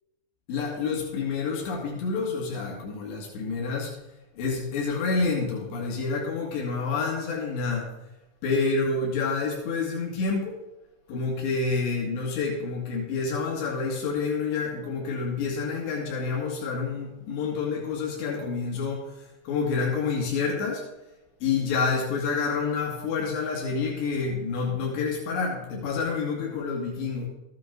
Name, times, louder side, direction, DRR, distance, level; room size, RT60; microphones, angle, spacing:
voice 1, 0.5-3.9 4.4-7.9 8.4-10.6 11.1-19.2 19.5-20.9 21.4-27.3, left 4 dB, 85° left, -2 dB, 4.2 m, -28 dB
14.5 x 9.4 x 3.8 m, 0.98 s
omnidirectional pair, 4.8 m